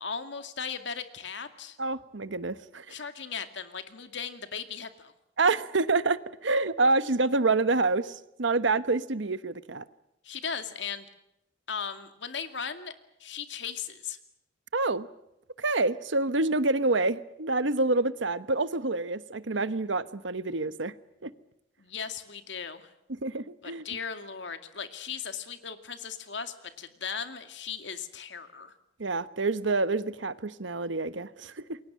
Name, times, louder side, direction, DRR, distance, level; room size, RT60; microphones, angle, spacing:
voice 1, 0.0-1.8 2.9-5.1 10.2-11.1 11.7-12.9 13.2-14.2 21.8-22.9 23.6-28.7, left 6 dB, 70° left, 2.3 m, -37 dB
voice 2, 1.8-3.0 5.4-9.8 14.7-15.1 15.6-20.9 21.2-21.3 23.2-23.8 29.0-31.8, right 3 dB, 80° right, 1.1 m, -27 dB
28.5 x 22.5 x 7.5 m
head